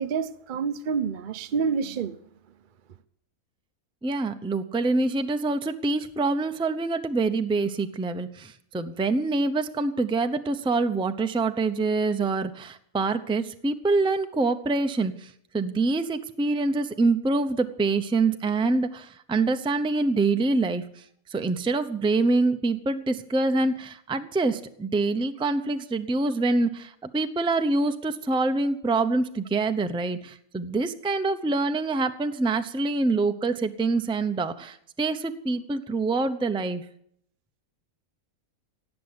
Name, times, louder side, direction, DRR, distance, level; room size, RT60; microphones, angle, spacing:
voice 1, 0.0-2.2, right 6 dB, 50° right, 0.6 m, -28 dB
voice 2, 4.0-21.0 21.3-36.8, right 3 dB, 5° right, 0.4 m, -25 dB
17.5 x 6.9 x 9.7 m
omnidirectional pair, 1.5 m